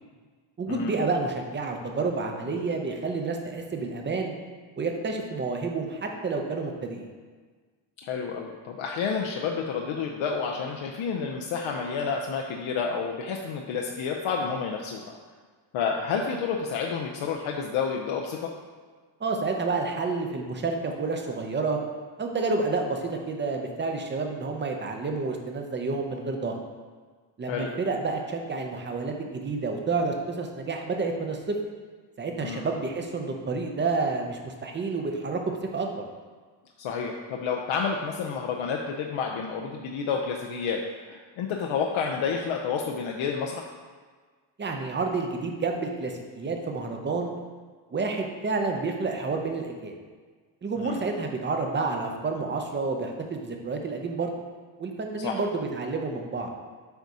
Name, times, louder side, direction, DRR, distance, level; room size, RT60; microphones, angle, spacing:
voice 1, 0.6-4.4 4.8-7.1 19.2-21.8 22.2-26.5 27.4-31.6 32.2-35.4 35.7-36.0 44.6-47.3 47.9-49.9 50.6-54.3 54.8-56.5, right 3 dB, 25° right, 3 dB, 0.5 m, -29 dB
voice 2, 8.0-15.2 15.7-18.5 27.5-27.7 32.4-32.6 36.8-40.8 41.1-43.7 50.8-51.0 55.2-55.3, left 6 dB, 80° left, 0 dB, 0.6 m, -30 dB
8.0 x 2.7 x 4.7 m, 1.5 s
cardioid pair, 155°, 46 cm